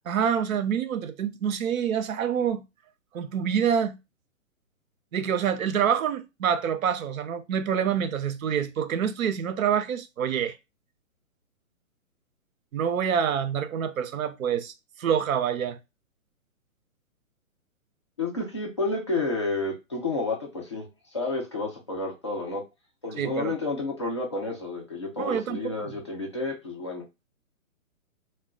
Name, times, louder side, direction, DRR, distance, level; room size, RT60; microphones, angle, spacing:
voice 1, 0.1-2.6 3.1-4.0 5.1-10.5 12.7-14.7 15.0-15.8 23.2-23.5 25.2-25.7, right 8 dB, 70° right, 0.6 m, -26 dB
voice 2, 18.2-20.9 21.1-22.6 23.0-27.0, left 3 dB, 25° left, 0.4 m, -30 dB
2.2 x 2.1 x 3.5 m
hypercardioid pair, 145°, 42 cm